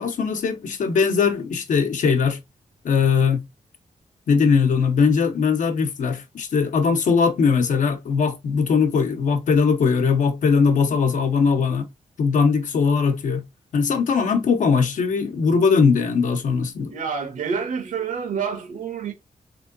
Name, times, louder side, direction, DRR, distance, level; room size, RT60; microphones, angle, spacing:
voice 1, 0.0-2.4 2.8-3.4 4.3-11.9 12.2-13.4 13.7-16.9, left 5 dB, 75° left, 1.0 m, -20 dB
voice 2, 16.9-19.1, right 6 dB, 80° right, 1.3 m, -28 dB
3.6 x 3.3 x 4.0 m
wide cardioid pair, 165°, 13 cm